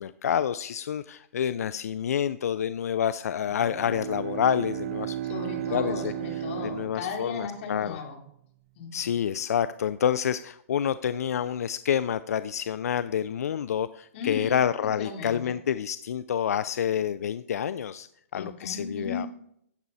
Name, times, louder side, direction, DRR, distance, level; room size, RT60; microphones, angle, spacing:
voice 1, 0.0-5.2 5.7-6.1 6.6-8.0 8.9-18.1 18.3-19.3, left 9 dB, 85° left, 14 dB, 0.5 m, -28 dB
Bowed string instrument, 3.5-7.8, right 12 dB, 45° right, 0.3 m, -35 dB
voice 2, 5.2-8.2 8.8-9.1 14.1-15.6 18.3-19.3, left 5 dB, 50° left, 1 dB, 3.5 m, -36 dB
14.0 x 8.5 x 4.1 m, 0.75 s
hypercardioid pair, 150°, 8 cm